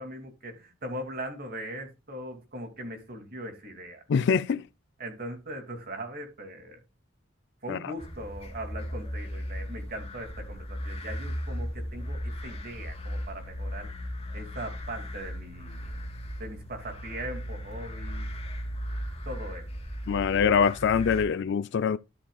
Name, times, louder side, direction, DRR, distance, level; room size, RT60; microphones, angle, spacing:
voice 1, 0.0-4.0 5.0-6.8 7.6-13.9 14.3-15.9 16.4-18.3 19.2-19.7, right 1 dB, 50° right, 2.5 m, -40 dB
voice 2, 4.1-4.6 7.7-7.8 20.1-22.0, left 6 dB, 65° left, 0.4 m, -24 dB
sound 1, 8.0-21.2, equal, 30° left, 2.6 m, -37 dB
12.5 x 7.3 x 2.3 m
head